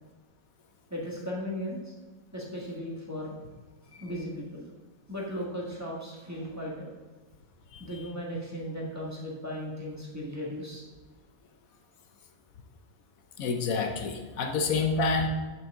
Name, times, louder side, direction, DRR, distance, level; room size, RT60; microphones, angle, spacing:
voice 1, 0.9-1.9 2.3-3.4 4.0-4.7 5.1-6.9 7.8-10.8, equal, 10° right, -5 dB, 1.6 m, -36 dB
voice 2, 13.4-15.3, left 4 dB, 75° left, 5 dB, 1.2 m, -28 dB
9.0 x 6.2 x 3.6 m, 1.3 s
omnidirectional pair, 1.5 m